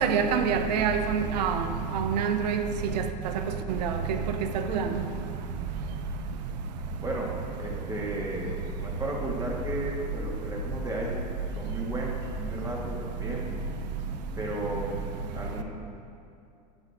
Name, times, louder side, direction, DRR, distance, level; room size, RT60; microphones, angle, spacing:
voice 1, 0.0-1.6 1.9-2.6 3.7-3.9 4.7-4.8, right 6 dB, 80° right, 7 dB, 0.8 m, -25 dB
voice 2, 7.0-11.3 11.5-13.4 14.4-14.9 15.3-15.6, right 1 dB, 15° right, -3 dB, 2.0 m, -34 dB
11.0 x 8.0 x 3.7 m, 2.5 s
hypercardioid pair, 95°, 21 cm